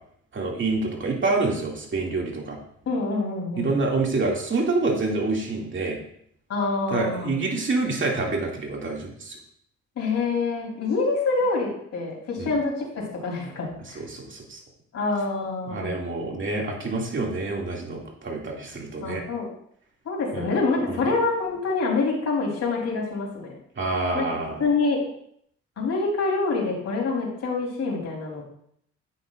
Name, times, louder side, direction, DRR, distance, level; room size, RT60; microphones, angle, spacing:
voice 1, 0.3-2.6 3.6-6.0 6.9-9.4 12.4-12.5 14.0-14.6 15.6-19.2 20.3-20.5 20.9-21.1 23.8-24.6, right 3 dB, 40° right, -1 dB, 2.4 m, -27 dB
voice 2, 2.9-3.7 6.5-7.3 10.0-14.0 14.9-15.9 19.0-19.5 20.1-23.5 24.1-24.3 24.6-25.1 25.8-28.4, left 3 dB, 55° left, -2 dB, 3.8 m, -26 dB
9.8 x 8.5 x 2.5 m, 0.68 s
cardioid pair, 90°, 30 cm